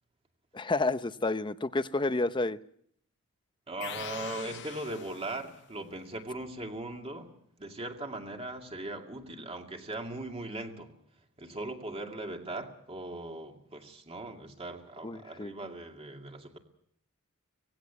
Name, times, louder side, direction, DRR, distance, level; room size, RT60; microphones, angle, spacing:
voice 1, 0.5-2.6 15.0-15.5, left 2 dB, 20° left, 0.7 m, -30 dB
voice 2, 3.7-16.6, right 2 dB, 25° right, 2.4 m, -39 dB
sound 1, 3.8-5.7, left 9 dB, 55° left, 0.8 m, -43 dB
19.0 x 16.5 x 8.5 m
head